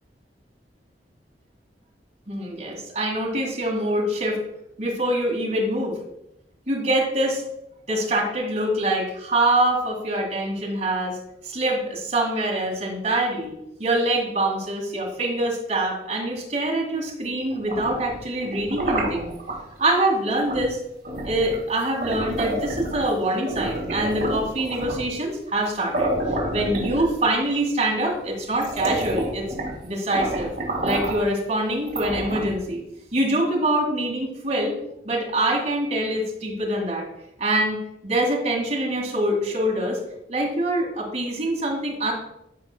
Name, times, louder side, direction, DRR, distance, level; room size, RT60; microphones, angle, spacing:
voice 1, 2.3-4.4 4.8-6.0 6.7-7.4 7.9-11.2 11.4-19.3 19.8-20.8 21.2-26.1 26.5-29.5 29.8-30.5 30.8-32.8 33.1-34.7 35.0-37.1 37.4-40.0 40.3-42.1, right 1 dB, 40° right, -1 dB, 2.0 m, -24 dB
sound 1, 17.5-19.6 20.5-20.7 21.0-23.1 23.5-25.1 25.6-25.7 25.9-27.4 28.1-28.2 28.5-29.8 30.1-31.3 31.9-32.7, right 1 dB, 60° right, 2.1 m, -29 dB
13.5 x 4.9 x 2.2 m, 0.84 s
head